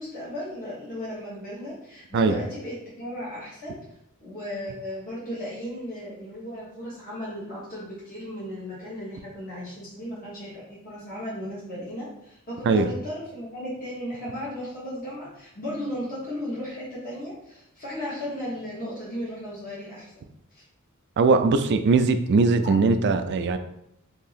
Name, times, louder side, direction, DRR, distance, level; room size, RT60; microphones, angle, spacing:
voice 1, 0.0-3.7 4.2-20.6 22.6-22.8, equal, 40° left, -9 dB, 1.1 m, -35 dB
voice 2, 21.2-23.6, right 4 dB, 50° right, 9 dB, 0.3 m, -20 dB
2.8 x 2.7 x 4.0 m, 0.77 s
head